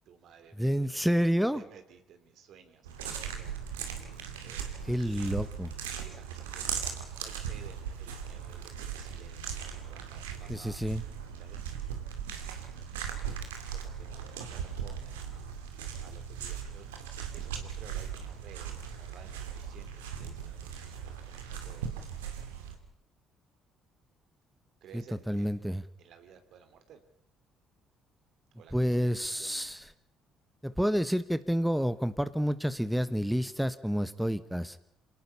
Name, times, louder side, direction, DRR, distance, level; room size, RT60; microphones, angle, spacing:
voice 1, 0.1-1.0 1.5-4.1 4.4-4.7 5.1-5.4 5.8-6.7 7.1-10.8 11.4-11.7 12.7-13.2 13.7-16.9 17.3-21.9 22.2-22.5 24.8-25.7 26.0-27.0 28.5-29.5, right 8 dB, 65° right, 8 dB, 2.9 m, -56 dB
voice 2, 0.6-1.6 4.8-5.7 10.5-11.0 24.9-25.8 28.7-29.9 30.6-34.8, equal, ahead, 13 dB, 1.2 m, -29 dB
sound 1, 2.8-22.8, right 8 dB, 85° right, 2.3 m, -39 dB
27.0 x 18.5 x 5.6 m, 0.78 s
hypercardioid pair, 50°, 0 cm